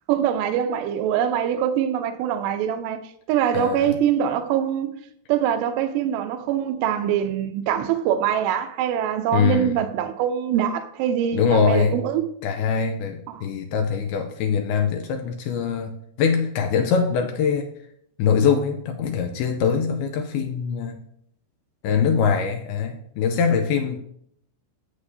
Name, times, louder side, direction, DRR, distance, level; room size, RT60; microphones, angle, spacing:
voice 1, 0.1-3.0 3.3-4.9 5.3-12.3 13.3-13.4, right 9 dB, 80° right, 2.9 m, -23 dB
voice 2, 3.5-3.9 9.3-9.8 11.3-12.0 12.4-17.7 18.2-21.0 21.8-24.0, left 6 dB, 80° left, 2.4 m, -23 dB
11.5 x 8.0 x 2.7 m
omnidirectional pair, 5.0 m